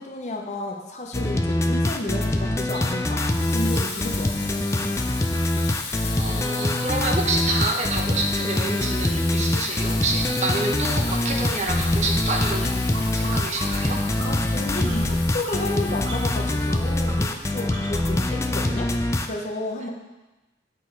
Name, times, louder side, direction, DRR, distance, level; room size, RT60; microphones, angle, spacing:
voice 1, 0.0-4.6 14.2-18.9 19.2-19.9, left 1 dB, 40° left, 1 dB, 0.8 m, -32 dB
sound 1, 0.6-0.7 1.0-1.2 1.5-2.9 3.2-6.9 7.2-18.1, right 2 dB, 70° right, 1.7 m, -42 dB
sound 2, 1.1-19.3, left 1 dB, 15° left, 0.3 m, -24 dB
Water tap faucet / Sink (filling or washing), 3.2-18.0, left 5 dB, 75° left, 0.9 m, -36 dB
voice 2, 5.6-14.0, right 2 dB, 40° right, 1 dB, 0.8 m, -28 dB
8.3 x 4.3 x 4.6 m, 1.1 s
head